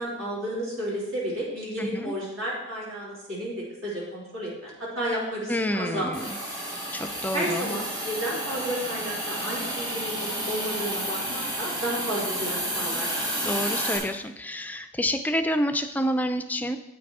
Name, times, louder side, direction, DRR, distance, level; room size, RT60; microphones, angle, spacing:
voice 1, 0.0-6.3 7.3-13.1, equal, 65° right, -6 dB, 3.4 m, -32 dB
voice 2, 1.8-2.1 5.5-6.4 6.9-7.7 13.4-16.8, equal, 10° left, 8 dB, 0.4 m, -28 dB
Hiss, 6.1-14.0, right 1 dB, 20° right, 2.0 m, -31 dB
8.8 x 6.0 x 4.8 m, 0.90 s
head